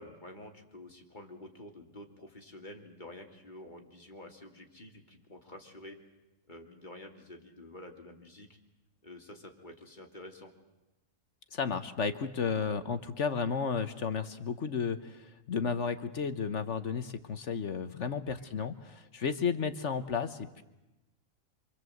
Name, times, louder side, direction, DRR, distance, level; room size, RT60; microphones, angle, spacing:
voice 1, 0.0-6.0 6.5-8.5 9.0-10.5 18.4-18.7, left 1 dB, 35° left, 3 dB, 2.8 m, -49 dB
voice 2, 11.5-20.6, left 6 dB, 60° left, 11 dB, 1.4 m, -33 dB
27.0 x 24.5 x 7.9 m, 1.0 s
omnidirectional pair, 1.4 m